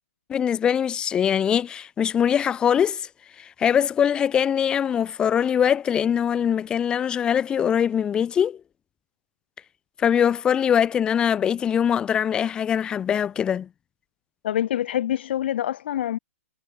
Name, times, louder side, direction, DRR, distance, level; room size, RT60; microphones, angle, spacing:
voice 1, 0.3-3.1 3.4-8.6 10.0-13.7, left 8 dB, 10° left, 2.4 m, -22 dB
voice 2, 14.4-16.2, left 11 dB, 45° left, 1.8 m, -26 dB
hypercardioid pair, 170°, 8 cm